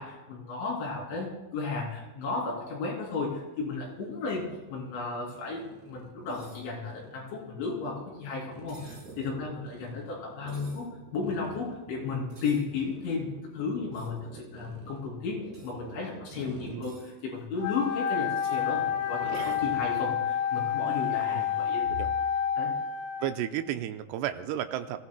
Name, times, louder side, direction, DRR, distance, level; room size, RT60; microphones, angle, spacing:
voice 1, 0.0-10.9 11.1-21.9 22.6-22.8, left 4 dB, 90° left, -3 dB, 5.4 m, -34 dB
sound 1, 3.9-17.6 17.9-21.9, right 3 dB, 60° right, 2.0 m, -48 dB
sound 2, 6.3-6.6 8.7-9.2 10.5-10.9 12.3-12.6 13.9-14.2 15.5-15.7 16.6-17.1 18.3-18.6 19.3-19.6, right 2 dB, 20° right, 6.6 m, -55 dB
Wind instrument woodwind instrument, 17.6-23.5, left 8 dB, 70° left, 3.7 m, -29 dB
voice 2, 23.2-25.0, right 11 dB, 85° right, 8 dB, 2.5 m, -33 dB
26.5 x 15.5 x 2.2 m, 1.1 s
omnidirectional pair, 5.3 m